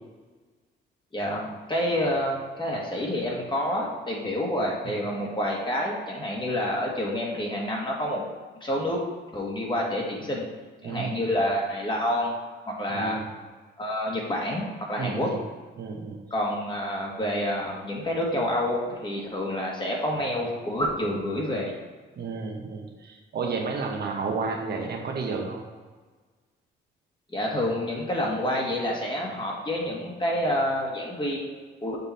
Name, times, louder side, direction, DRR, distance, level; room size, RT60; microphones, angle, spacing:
voice 1, 1.1-8.3 8.6-9.0 9.3-10.5 10.8-12.4 12.8-13.2 13.8-15.3 16.3-21.7 27.3-32.0, left 1 dB, 25° left, -2 dB, 1.7 m, -28 dB
voice 2, 10.8-11.3 12.9-13.3 15.0-15.4 15.8-16.2 22.2-25.6, right 4 dB, 55° right, 1 dB, 1.1 m, -32 dB
6.8 x 3.8 x 4.2 m, 1.4 s
cardioid pair, 90°, 20 cm